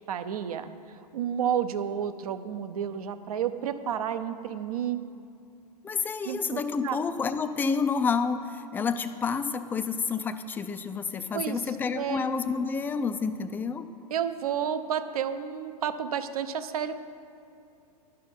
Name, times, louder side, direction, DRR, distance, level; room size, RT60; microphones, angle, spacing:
voice 1, 0.1-0.7 1.1-5.0 6.3-7.0 11.3-11.6 11.9-12.3 14.1-17.0, right 9 dB, 65° right, 11 dB, 0.6 m, -31 dB
voice 2, 5.8-13.9, left 5 dB, 10° left, 9 dB, 0.3 m, -29 dB
11.5 x 5.7 x 5.2 m, 2.6 s
figure-of-eight pair, 105°, 21 cm